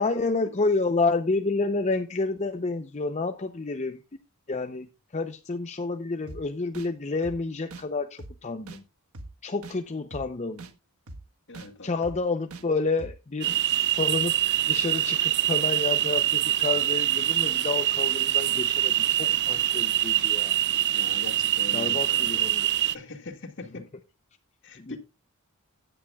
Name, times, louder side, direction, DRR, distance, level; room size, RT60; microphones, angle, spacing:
voice 1, 0.0-4.0 4.5-8.8 9.4-10.7 11.8-14.4 14.6-20.6 21.7-22.7 23.7-23.8 24.8-25.0, left 3 dB, 30° left, 0.6 m, -29 dB
sound 1, 6.3-6.4 6.7-6.9 7.2-7.4 7.7-7.8 8.2-8.3 8.7-8.8 9.1-9.3 9.6-9.8 10.1-10.2 10.6-10.7 11.1-11.2 11.5-11.7 12.0-12.2 12.5-12.6 13.0-13.1 13.5-13.6, right 2 dB, 75° right, 1.3 m, -41 dB
voice 2, 11.5-11.9 20.8-22.3 22.9-23.8 24.6-25.0, left 3 dB, 55° left, 2.0 m, -41 dB
sound 2, 13.4-23.0, right 13 dB, 50° right, 0.5 m, -24 dB
15.5 x 10.0 x 2.3 m
head